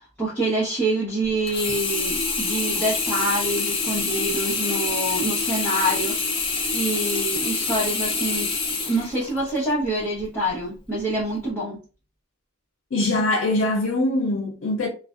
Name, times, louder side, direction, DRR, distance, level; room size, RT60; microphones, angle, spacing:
voice 1, 0.0-6.4 6.7-8.5 8.9-11.8, right 1 dB, 5° left, 0.9 m, -26 dB
Sink (filling or washing), 1.5-9.7 10.2-10.3, left 4 dB, 25° left, 0.5 m, -26 dB
voice 2, 12.9-14.9, left 2 dB, 80° left, 0.5 m, -22 dB
2.4 x 2.1 x 2.4 m
head